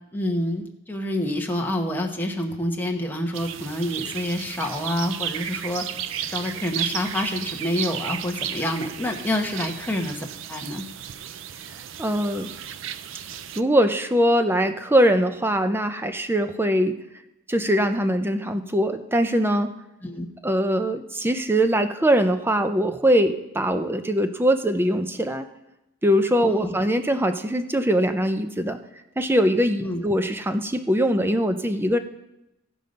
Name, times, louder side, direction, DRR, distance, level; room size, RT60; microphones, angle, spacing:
voice 1, 0.1-5.8 6.3-10.8 20.0-20.3 26.5-26.7 29.8-30.1, left 1 dB, 10° left, 2 dB, 1.0 m, -27 dB
sound 1, 3.3-13.6, right 10 dB, 60° right, 0.4 m, -34 dB
voice 2, 12.0-12.5 13.6-17.0 17.5-19.7 20.4-25.5 26.0-28.8 29.2-32.0, equal, 10° right, 9 dB, 0.5 m, -22 dB
16.0 x 5.4 x 5.2 m, 0.90 s
head